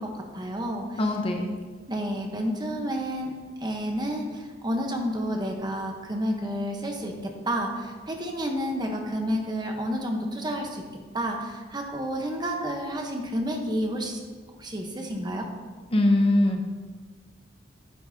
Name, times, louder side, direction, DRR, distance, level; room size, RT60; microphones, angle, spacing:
voice 1, 0.0-1.0 1.9-3.4 3.6-10.8 11.1-14.2 14.6-15.5, equal, 25° right, 2 dB, 1.0 m, -30 dB
voice 2, 1.0-1.5 15.9-16.7, left 1 dB, 30° left, 3 dB, 0.8 m, -22 dB
9.4 x 9.2 x 2.8 m, 1.5 s
head